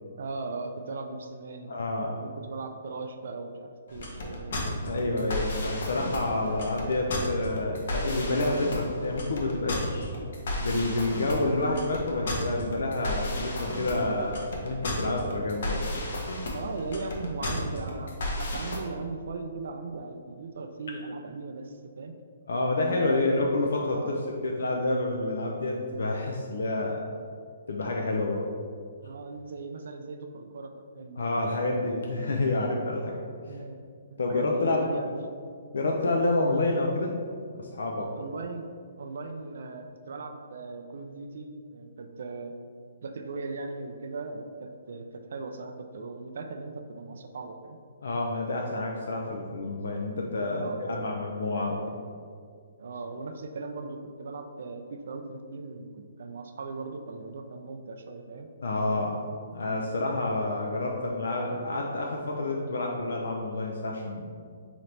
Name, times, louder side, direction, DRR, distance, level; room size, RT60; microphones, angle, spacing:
voice 1, 0.2-1.7 2.2-4.5 16.5-22.2 22.7-23.5 23.9-24.2 29.0-31.2 33.4-33.8 34.3-35.3 38.1-42.6 43.0-47.8 50.5-51.1 52.8-58.5, right 3 dB, 65° right, 6 dB, 0.3 m, -38 dB
voice 2, 1.7-2.2 4.9-10.1 10.6-15.8 22.5-27.1 27.7-28.4 31.2-33.2 34.2-34.8 35.7-37.1 37.6-38.1 48.0-52.0 58.6-59.2 59.5-64.4, left 2 dB, 85° left, 0 dB, 0.4 m, -28 dB
sound 1, 3.9-18.8, left 1 dB, 65° left, 0.8 m, -33 dB
3.9 x 2.9 x 3.2 m, 2.2 s
hypercardioid pair, 165°, 0 cm